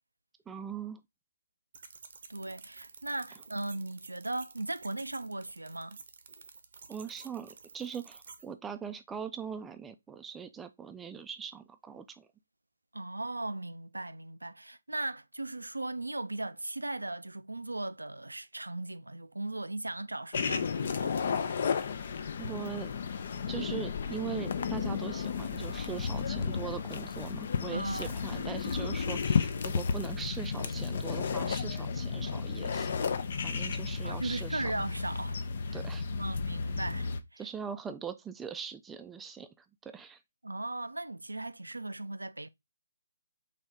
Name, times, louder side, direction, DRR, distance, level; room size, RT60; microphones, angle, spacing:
voice 1, 0.5-1.0 6.9-12.3 22.4-22.9 23.5-33.1 33.4-34.6 35.7-36.1 37.4-39.5 39.8-40.2, right 7 dB, 10° right, 0.4 m, -41 dB
sound 1, 1.7-8.4, right 5 dB, 55° right, 0.7 m, -51 dB
voice 2, 2.3-6.0 12.9-21.4 27.7-28.1 34.0-35.4 35.6-35.8 36.2-37.5 40.4-42.5, right 2 dB, 90° right, 0.4 m, -37 dB
sound 2, 20.3-37.2, left 5 dB, 50° left, 0.5 m, -33 dB
4.0 x 2.8 x 3.4 m
figure-of-eight pair, 140°, 0 cm